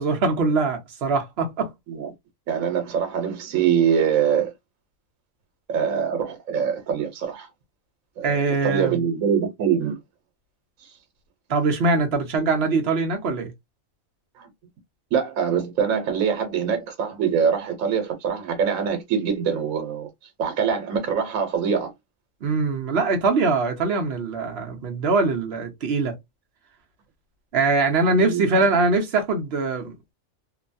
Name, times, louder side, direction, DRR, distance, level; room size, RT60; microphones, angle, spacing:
voice 1, 0.0-1.7 8.2-9.0 11.5-13.5 22.4-26.1 27.5-30.0, right 3 dB, 55° right, 0.9 m, -22 dB
voice 2, 2.5-4.5 5.7-7.5 8.2-8.4 8.6-10.0 14.4-14.5 15.1-20.1 20.4-21.9 28.2-28.5, right 7 dB, 80° right, 1.2 m, -24 dB
3.0 x 2.1 x 2.5 m
omnidirectional pair, 1.4 m